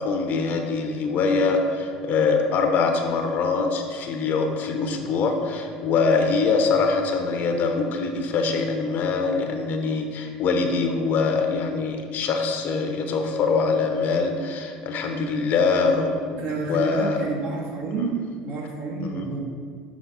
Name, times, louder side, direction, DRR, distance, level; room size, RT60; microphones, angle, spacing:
voice 1, 0.0-16.4 16.7-17.2 18.0-18.1 19.0-19.3, left 4 dB, 55° left, 4 dB, 1.0 m, -23 dB
voice 2, 16.4-18.2 18.4-19.5, right 4 dB, 60° right, -3 dB, 1.8 m, -29 dB
6.2 x 5.7 x 4.2 m, 2.1 s
hypercardioid pair, 85°, 4 cm